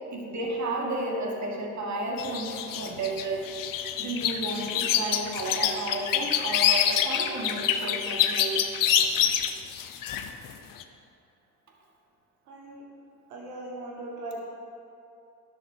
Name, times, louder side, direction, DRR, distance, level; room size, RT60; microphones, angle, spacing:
voice 1, 0.1-3.5 4.0-8.6, right 2 dB, 40° right, -1 dB, 2.2 m, -32 dB
sound 1, 2.2-10.5 10.8-10.9, left 9 dB, 45° left, 0.8 m, -26 dB
voice 2, 12.4-12.9 13.3-14.4, right 2 dB, 75° right, -3 dB, 1.5 m, -39 dB
12.0 x 11.5 x 2.9 m, 2.7 s
hypercardioid pair, 55°, 46 cm